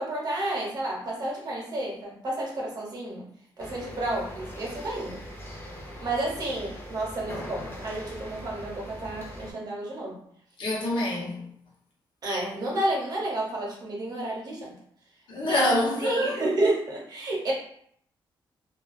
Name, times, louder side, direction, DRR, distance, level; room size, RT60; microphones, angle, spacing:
voice 1, 0.0-3.3 3.6-5.2 6.0-10.2 12.2-14.7 15.4-15.6 16.0-17.5, right 1 dB, 50° right, 0.7 m, -30 dB
sound 1, 3.6-9.5, equal, 25° left, 0.5 m, -41 dB
voice 2, 10.6-11.5 15.3-16.4, left 1 dB, 70° left, 0.8 m, -26 dB
2.3 x 2.2 x 2.4 m
cardioid pair, 130°, 9 cm